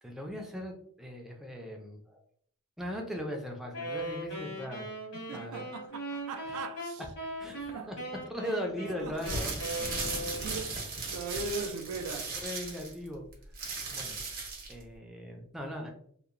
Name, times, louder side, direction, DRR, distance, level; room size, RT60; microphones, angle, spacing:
voice 1, 0.0-2.2 2.8-4.9 5.3-5.7 6.5-6.6 7.0-7.1 7.4-8.0 8.2-9.5 12.4-13.3 13.9-14.2 14.7-15.9, equal, ahead, 0.4 m, -39 dB
Wind instrument woodwind instrument, 3.7-10.7, right 1 dB, 80° left, 1.1 m, -39 dB
voice 2, 5.1-7.0 7.7-7.9 8.4-8.6 9.0-9.2 10.4-12.4, right 4 dB, 80° right, 0.3 m, -39 dB
sound 1, 9.1-14.8, right 3 dB, 45° right, 0.8 m, -37 dB
2.8 x 2.0 x 2.4 m
head